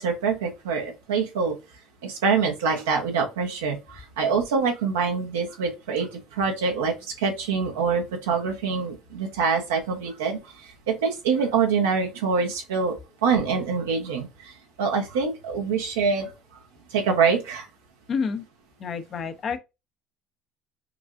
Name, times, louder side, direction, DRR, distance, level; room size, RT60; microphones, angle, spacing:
voice 1, 0.0-1.5 2.0-13.0 13.2-14.5 14.8-16.3 16.9-17.7, right 5 dB, 85° right, 1.0 m, -25 dB
voice 2, 18.1-18.4 18.8-19.6, left 5 dB, 45° left, 0.7 m, -28 dB
4.7 x 2.4 x 2.5 m
hypercardioid pair, 75°, 0 cm